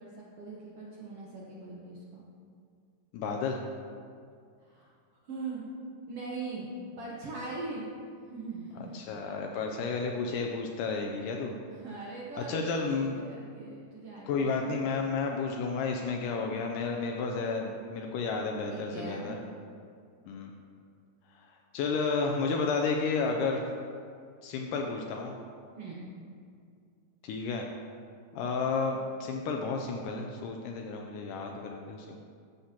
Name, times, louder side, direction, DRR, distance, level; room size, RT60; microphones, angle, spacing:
voice 1, 0.0-2.2 4.6-4.9 5.2-5.7 6.1-6.7 7.0-7.9 8.2-9.0 11.7-14.6 18.7-19.3 25.8-26.1, right 3 dB, 70° right, -5 dB, 1.4 m, -41 dB
voice 2, 3.1-3.6 8.9-11.6 12.5-13.2 14.3-19.4 20.3-20.5 21.4-21.5 21.7-23.6 24.4-25.3 27.2-27.7 28.3-32.2, left 4 dB, 80° left, 2 dB, 2.1 m, -32 dB
13.5 x 6.6 x 2.9 m, 2.3 s
omnidirectional pair, 3.9 m